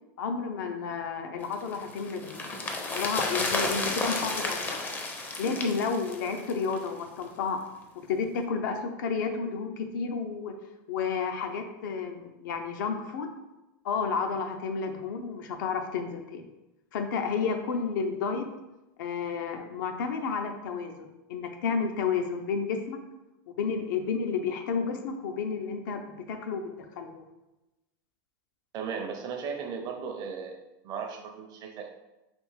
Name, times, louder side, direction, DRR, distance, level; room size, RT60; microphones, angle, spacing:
voice 1, 0.2-2.5 2.8-4.8 5.4-7.6 8.0-10.5 10.9-13.3 13.8-16.5 16.9-18.5 19.0-23.0 23.5-27.2, left 5 dB, 75° left, 5 dB, 0.5 m, -31 dB
sound 1, 1.5-6.9 7.2-7.3, left 3 dB, 15° left, 0.4 m, -32 dB
voice 2, 28.7-30.6 30.8-31.9, right 6 dB, 40° right, 4 dB, 0.5 m, -36 dB
3.4 x 2.5 x 3.2 m, 0.99 s
supercardioid pair, 130°, 11 cm